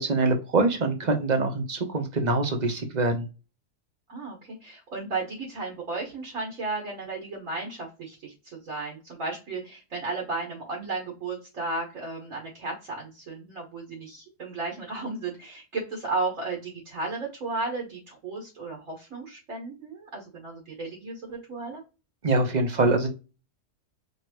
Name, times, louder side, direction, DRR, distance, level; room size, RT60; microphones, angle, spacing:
voice 1, 0.0-3.2 22.2-23.1, right 2 dB, 35° right, 5 dB, 0.9 m, -24 dB
voice 2, 4.1-8.3 8.6-21.8, right 3 dB, 55° right, -1 dB, 1.9 m, -34 dB
4.8 x 3.0 x 3.1 m, 0.30 s
omnidirectional pair, 1.6 m